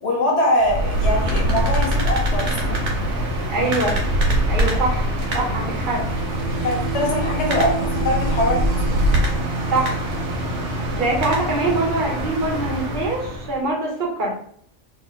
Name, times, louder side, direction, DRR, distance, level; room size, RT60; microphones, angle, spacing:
voice 1, 0.0-2.7 6.6-9.0, left 1 dB, 65° left, -1 dB, 1.3 m, -23 dB
sound 1, 0.6-13.6, equal, 75° right, 1.2 m, -23 dB
voice 2, 3.5-4.0 4.5-5.1 5.3-6.0 9.7-10.1 11.0-14.4, right 2 dB, 45° right, -2 dB, 1.1 m, -23 dB
sound 2, 5.6-12.2, right 5 dB, 60° right, 0.5 m, -31 dB
3.0 x 2.8 x 3.8 m, 0.62 s
omnidirectional pair, 1.2 m